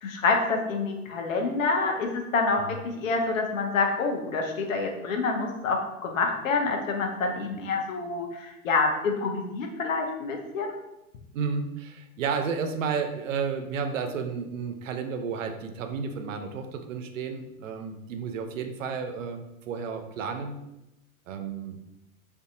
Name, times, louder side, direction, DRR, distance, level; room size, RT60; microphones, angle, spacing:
voice 1, 0.0-2.6 3.0-10.7, left 4 dB, 65° left, 2 dB, 0.7 m, -27 dB
voice 2, 11.3-20.6 21.3-21.8, right 5 dB, 65° right, 6 dB, 0.5 m, -32 dB
2.5 x 2.4 x 2.5 m, 0.92 s
figure-of-eight pair, 100°, 43 cm